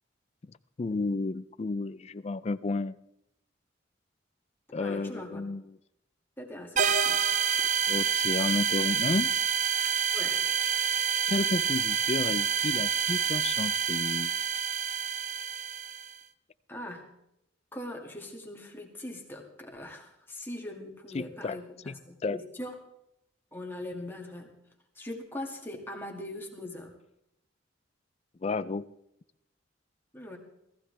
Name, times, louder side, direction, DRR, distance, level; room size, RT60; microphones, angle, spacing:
voice 1, 0.4-2.9 4.7-5.6 7.9-9.3 11.3-14.3 21.1-21.6 21.9-22.4 28.4-28.9, left 3 dB, 35° left, 0.4 m, -32 dB
voice 2, 4.8-5.5 6.4-7.2 10.1-10.4 16.7-17.1 17.7-22.7 23.5-24.5 25.0-26.9 30.1-30.4, left 1 dB, 10° left, 2.0 m, -41 dB
sound 1, 6.8-16.1, right 7 dB, 40° right, 0.5 m, -28 dB
18.0 x 15.0 x 3.3 m
head